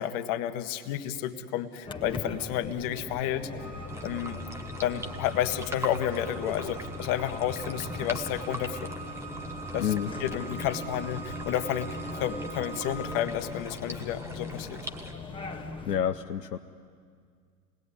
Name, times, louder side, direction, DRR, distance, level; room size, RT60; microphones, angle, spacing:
voice 1, 0.0-3.5 4.0-4.4 4.8-8.9 9.7-9.9 10.2-14.8, left 11 dB, 45° left, 8 dB, 1.5 m, -31 dB
sound 1, 1.9-16.0, left 3 dB, 10° left, 1.8 m, -41 dB
sound 2, 3.6-12.9, right 2 dB, 85° right, 7.9 m, -41 dB
sound 3, 3.9-15.1, right 1 dB, 5° right, 1.4 m, -43 dB
voice 2, 9.8-10.1 15.8-16.6, left 9 dB, 75° left, 7 dB, 0.8 m, -28 dB
27.0 x 19.5 x 9.9 m, 2.1 s
figure-of-eight pair, 85°, 49 cm